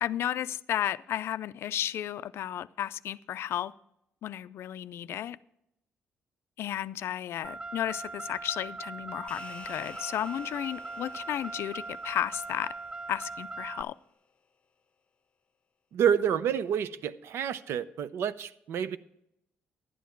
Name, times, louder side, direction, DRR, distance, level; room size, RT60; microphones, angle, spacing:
voice 1, 0.0-3.7 4.2-5.4 6.6-12.7 13.1-13.9, left 11 dB, 70° left, 0.3 m, -33 dB
Car, 7.4-13.8, right 3 dB, 20° right, 0.3 m, -40 dB
sound 1, 9.3-13.9, left 5 dB, 25° left, 0.8 m, -52 dB
voice 2, 15.9-19.0, right 8 dB, 75° right, 0.5 m, -28 dB
11.5 x 9.3 x 4.5 m
cardioid pair, 110°, 4 cm